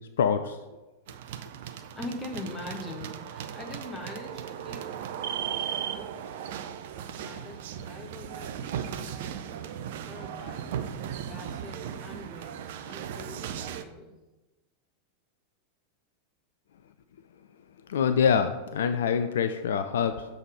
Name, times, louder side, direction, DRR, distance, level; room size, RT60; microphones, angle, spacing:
voice 1, 0.2-0.6 17.9-20.3, left 7 dB, 60° left, 9 dB, 0.3 m, -25 dB
sound 1, 1.1-13.8, right 9 dB, 55° right, 0.5 m, -37 dB
voice 2, 1.9-4.9 5.4-6.6 7.1-9.7 10.1-10.7 11.2-14.2, left 2 dB, 15° left, 1 dB, 1.4 m, -43 dB
7.0 x 4.0 x 4.8 m, 1.1 s
figure-of-eight pair, 90°, 0 cm